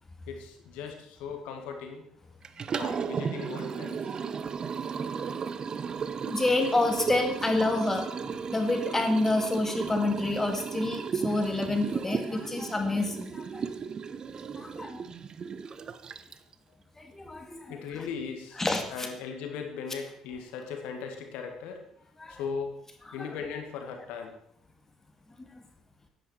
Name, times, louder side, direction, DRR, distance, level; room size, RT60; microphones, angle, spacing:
voice 1, 0.3-2.0 2.7-4.2 6.6-6.8 17.7-18.6 18.9-21.8 22.3-22.8 23.1-24.3, left 6 dB, 60° left, 4 dB, 2.1 m, -38 dB
Liquid, 2.4-16.5, right 6 dB, 35° right, 0.7 m, -35 dB
voice 2, 6.3-13.6 14.4-15.0 17.0-17.7 18.6-18.8 22.2-22.3, left 2 dB, 15° left, 4 dB, 2.1 m, -28 dB
13.5 x 10.0 x 4.6 m, 0.70 s
figure-of-eight pair, 50°, 2 cm